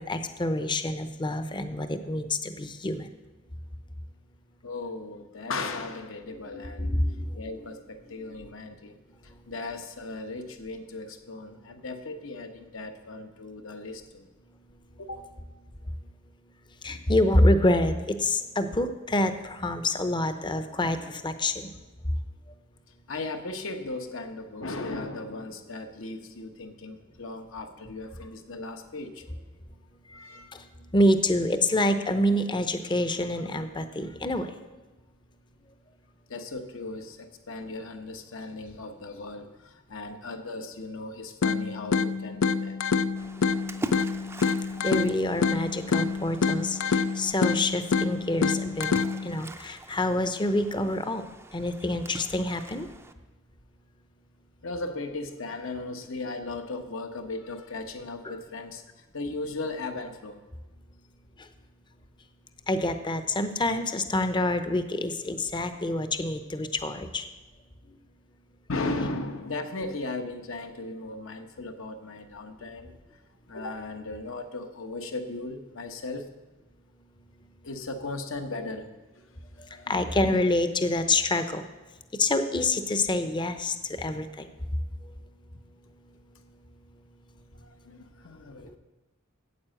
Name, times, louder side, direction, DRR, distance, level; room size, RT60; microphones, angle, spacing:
voice 1, 0.0-3.1 6.5-7.4 16.8-21.7 30.1-30.6 30.9-34.6 44.8-48.9 49.2-51.3 51.5-52.9 58.2-58.3 61.4-61.5 62.7-67.3 79.6-81.6 82.1-84.5, left 1 dB, 25° left, 9 dB, 0.7 m, -27 dB
voice 2, 4.6-6.9 7.3-8.9 9.2-14.3 15.0-15.3 16.9-17.1 23.1-29.4 30.1-30.6 36.3-42.8 44.7-44.8 54.6-60.4 68.7-73.0 73.5-76.3 77.6-78.9 79.1-79.2 79.7-80.0 87.6-88.8, left 2 dB, 70° left, 6 dB, 1.1 m, -37 dB
sound 1, 41.4-49.4, left 5 dB, 85° left, 0.5 m, -27 dB
Splash splatter, 43.2-53.1, right 1 dB, 10° right, 0.5 m, -43 dB
9.5 x 8.3 x 7.7 m, 1.2 s
head